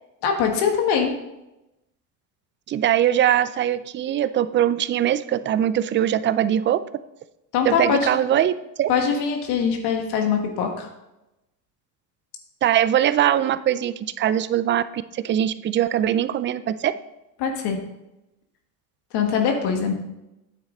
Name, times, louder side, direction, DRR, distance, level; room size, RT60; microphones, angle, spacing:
voice 1, 0.2-1.1 7.5-8.0 8.9-10.9 17.4-17.8 19.1-19.9, left 6 dB, 65° left, 3 dB, 1.8 m, -22 dB
voice 2, 2.7-6.8 7.6-8.5 8.8-8.9 12.6-16.9, right 11 dB, 30° right, 15 dB, 0.4 m, -21 dB
9.2 x 7.4 x 3.9 m, 0.93 s
supercardioid pair, 100°, 43 cm